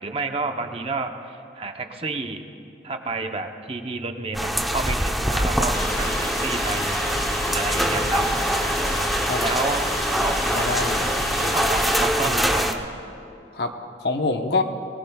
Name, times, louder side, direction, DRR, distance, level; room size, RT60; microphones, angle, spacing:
voice 1, 0.0-2.4 2.8-7.0 7.5-8.2 9.4-9.9 10.2-10.7 11.5-12.6, right 3 dB, 35° right, 5 dB, 0.8 m, -30 dB
sound 1, 4.3-12.7, equal, ahead, 0.7 m, -24 dB
sound 2, 5.7-12.1, left 1 dB, 20° left, 2.1 m, -30 dB
voice 2, 7.9-8.4 9.3-9.4 10.5-11.6 12.2-12.4 13.5-13.7 14.0-14.6, left 3 dB, 65° left, 5 dB, 1.0 m, -27 dB
22.0 x 19.0 x 2.3 m, 2.7 s
head